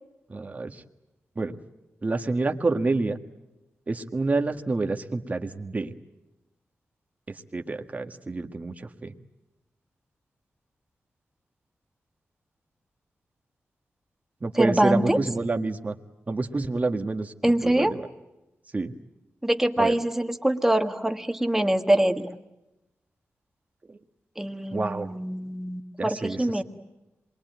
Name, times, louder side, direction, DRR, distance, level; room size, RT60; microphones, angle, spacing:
voice 1, 0.3-0.7 1.4-1.6 2.0-3.2 3.9-5.9 7.5-8.7 9.0-9.1 14.4-15.9 16.3-18.0 18.7-18.9 19.8-19.9 24.7-25.1 26.0-26.4, right 3 dB, 30° right, 6 dB, 1.6 m, -28 dB
voice 2, 14.5-15.2 17.4-18.0 19.4-22.3 24.4-26.6, right 1 dB, 10° right, 6 dB, 1.6 m, -24 dB
27.0 x 22.0 x 9.3 m, 0.98 s
wide cardioid pair, 120°, 5 cm